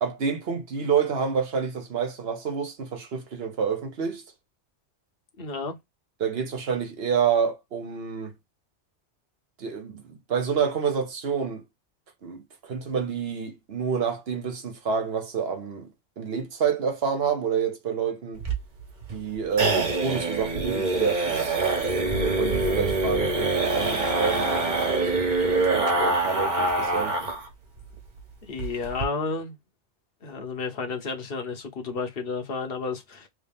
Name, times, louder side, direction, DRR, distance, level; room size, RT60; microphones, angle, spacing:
voice 1, 0.0-4.2 6.2-8.3 9.6-11.6 12.2-15.9 16.2-18.4 19.1-21.6 22.2-27.2, right 6 dB, 65° right, 1.2 m, -28 dB
voice 2, 5.4-5.8 28.4-29.6 30.2-33.3, left 4 dB, 60° left, 1.2 m, -31 dB
sound 1, 18.4-27.5 27.8-27.9 28.2-28.3 28.6-29.0, right 2 dB, 45° right, 1.2 m, -25 dB
3.3 x 2.7 x 3.4 m
omnidirectional pair, 1.1 m